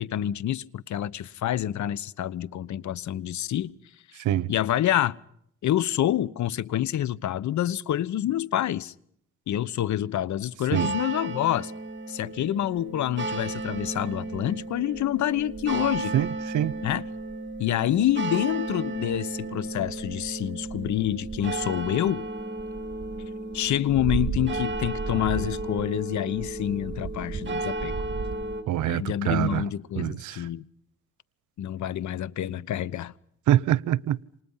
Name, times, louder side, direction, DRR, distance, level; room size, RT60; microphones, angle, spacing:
voice 1, 0.0-3.7 4.1-4.2 4.5-5.2 5.6-8.9 9.5-11.7 12.1-16.1 16.8-17.1 17.6-22.3 23.5-27.9 28.8-30.7 31.6-33.1, left 12 dB, 70° left, 1.2 m, -27 dB
voice 2, 4.2-4.5 10.7-10.9 16.1-16.8 28.7-29.6 30.0-30.4 33.5-34.2, right 12 dB, 80° right, 1.0 m, -25 dB
sound 1, 10.7-28.6, right 3 dB, 40° right, 3.7 m, -33 dB
28.5 x 26.5 x 5.7 m
cardioid pair, 90°, 30 cm